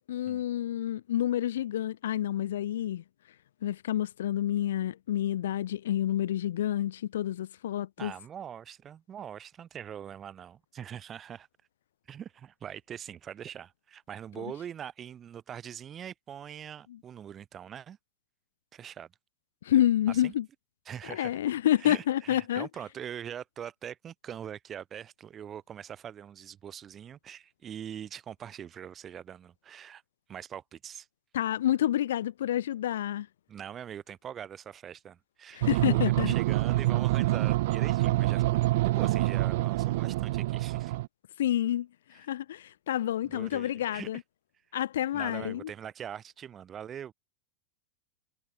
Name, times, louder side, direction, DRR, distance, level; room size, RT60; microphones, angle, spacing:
voice 1, 0.0-3.0 3.6-8.1 19.6-20.5 21.1-22.7 31.3-33.3 35.5-36.3 41.4-41.9 42.1-44.2 44.7-45.7, left 12 dB, 85° left, 0.6 m, -28 dB
voice 2, 8.0-11.5 12.1-18.0 18.7-19.1 20.1-20.3 20.9-21.4 21.8-30.0 30.3-31.1 33.5-41.0 43.3-44.1 45.1-47.1, right 9 dB, 20° right, 4.3 m, -42 dB
sound 1, 35.6-41.1, right 18 dB, 60° right, 0.5 m, -26 dB
supercardioid pair, 155°, 0 cm